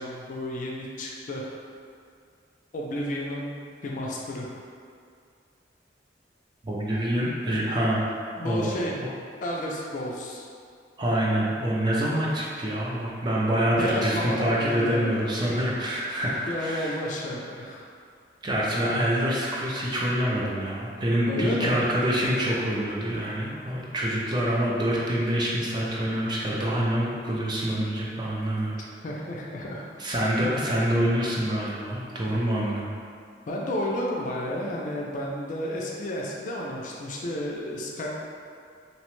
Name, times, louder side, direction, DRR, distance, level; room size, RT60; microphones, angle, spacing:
voice 1, 0.0-1.5 2.7-4.5 8.4-9.0 9.4-10.5 13.7-15.3 16.5-17.9 21.3-21.8 29.0-29.8 30.3-30.6 33.5-38.1, left 1 dB, 45° left, -2 dB, 0.3 m, -32 dB
voice 2, 6.6-8.0 8.3-9.1 11.0-17.0 18.4-28.8 30.0-32.9, equal, 25° right, -5 dB, 0.4 m, -26 dB
2.8 x 2.1 x 3.0 m, 2.2 s
head